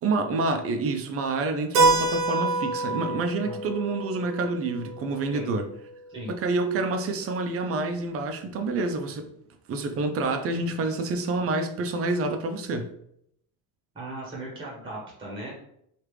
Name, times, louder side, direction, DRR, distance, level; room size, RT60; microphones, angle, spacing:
voice 1, 0.0-5.6 6.3-9.3 9.7-12.9, right 3 dB, 35° right, 6 dB, 0.5 m, -28 dB
Keyboard (musical), 1.7-6.2, right 3 dB, 85° right, 1.0 m, -27 dB
voice 2, 13.9-15.6, right 1 dB, 10° right, -3 dB, 0.9 m, -37 dB
3.2 x 2.4 x 3.1 m, 0.73 s
cardioid pair, 130°, 40 cm